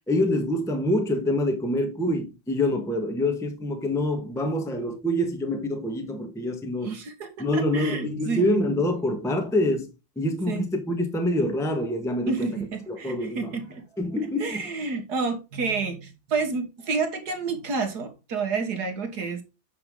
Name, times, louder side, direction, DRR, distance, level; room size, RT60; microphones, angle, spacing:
voice 1, 0.1-6.9 7.4-9.9 10.1-12.6 12.9-13.5 14.0-14.7, left 1 dB, ahead, 1.2 m, -26 dB
voice 2, 6.8-8.8 10.5-10.7 12.3-13.8 14.4-19.4, right 4 dB, 55° right, 1.9 m, -29 dB
9.2 x 5.6 x 3.8 m
omnidirectional pair, 2.2 m